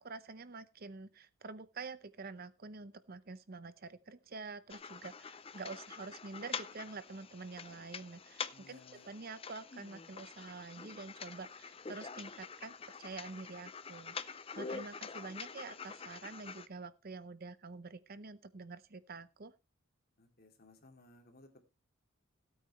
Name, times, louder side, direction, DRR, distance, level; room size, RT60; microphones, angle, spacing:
voice 1, 0.0-19.5, right 4 dB, 45° right, 14 dB, 0.7 m, -47 dB
sound 1, 4.7-16.7, left 5 dB, 25° left, 0.5 m, -46 dB
voice 2, 8.5-9.1 14.7-14.8 20.2-21.6, left 2 dB, 45° left, 4 dB, 2.7 m, -60 dB
16.5 x 8.9 x 3.2 m, 0.26 s
head